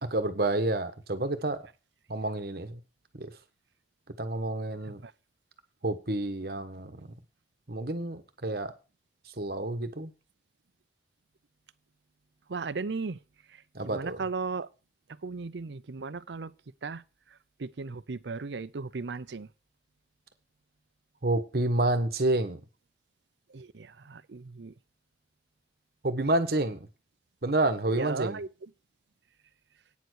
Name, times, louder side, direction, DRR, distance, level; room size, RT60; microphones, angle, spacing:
voice 1, 0.0-1.6 2.1-2.8 3.1-3.3 4.2-5.0 5.8-7.1 7.7-8.7 9.4-10.1 13.7-14.2 21.2-22.6 26.0-26.9 27.4-28.4, right 2 dB, 55° right, 1.2 m, -29 dB
voice 2, 12.5-13.2 13.5-14.7 15.2-16.5 16.8-17.0 17.6-19.5 23.5-24.7 27.9-28.7, right 4 dB, 80° right, 0.6 m, -36 dB
9.2 x 7.0 x 6.3 m
head